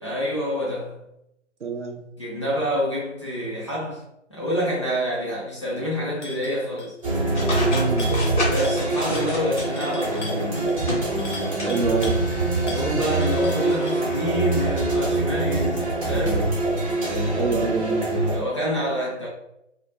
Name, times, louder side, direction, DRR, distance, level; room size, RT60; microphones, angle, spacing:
voice 1, 0.0-1.0 2.2-4.0 4.3-6.9 8.5-10.5 12.5-16.5 18.3-19.3, equal, 25° left, -7 dB, 0.5 m, -27 dB
voice 2, 1.6-2.0 7.7-8.1 11.6-12.2 12.7-12.8 17.4-18.1, right 4 dB, 70° right, 4 dB, 0.6 m, -26 dB
sound 1, 6.2-6.5 6.8-7.1 7.4-8.4 8.6-8.9 9.1-12.2 12.7-14.0, left 2 dB, 75° left, 0.8 m, -39 dB
sound 2, 7.0-18.4, right 2 dB, 30° right, 0.7 m, -24 dB
sound 3, 7.3-10.2 10.6-11.7 12.0-12.1 13.3-13.4, left 2 dB, 40° left, 0.9 m, -30 dB
2.2 x 2.1 x 2.7 m, 0.83 s
figure-of-eight pair, 145°, 36 cm